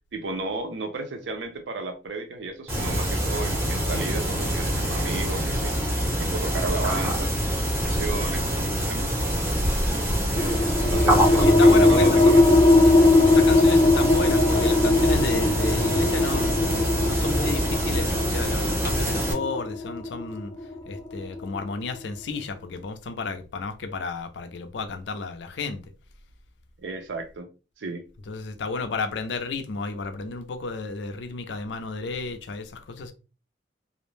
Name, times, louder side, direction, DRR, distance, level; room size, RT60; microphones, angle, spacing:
voice 1, 0.1-5.7 6.2-7.4 7.9-9.1 10.3-12.6 26.8-27.5 27.8-28.0, right 3 dB, 80° right, 0.5 m, -33 dB
sound 1, 2.7-19.3, equal, 15° right, 0.7 m, -25 dB
voice 2, 6.8-7.1 10.1-10.4 10.7-11.1 11.4-12.2 13.2-16.6 17.1-20.5 20.9-25.8 28.3-33.1, left 4 dB, 80° left, 0.4 m, -32 dB
sound 2, 10.4-21.6, left 2 dB, 20° left, 0.4 m, -20 dB
2.4 x 2.0 x 3.1 m
head